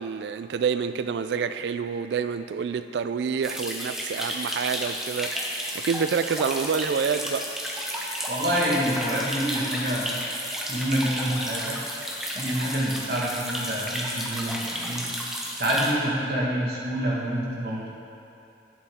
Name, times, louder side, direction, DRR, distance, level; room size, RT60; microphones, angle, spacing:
voice 1, 0.0-7.5, right 6 dB, 75° right, 11 dB, 0.3 m, -28 dB
sound 1, 3.4-15.9, equal, ahead, 0.8 m, -32 dB
voice 2, 8.3-10.1 10.7-11.7 12.3-15.0 15.6-17.9, right 1 dB, 60° right, -5 dB, 1.5 m, -27 dB
11.0 x 7.0 x 3.6 m, 2.6 s
head